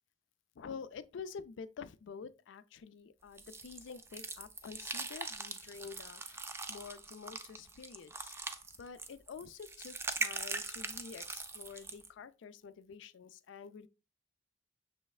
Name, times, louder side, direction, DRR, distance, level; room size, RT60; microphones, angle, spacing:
voice 1, 0.6-8.3 8.8-13.9, left 6 dB, 75° left, 0.4 m, -48 dB
sound 1, 3.4-12.1, right 3 dB, 15° right, 0.3 m, -42 dB
6.2 x 3.1 x 2.3 m
head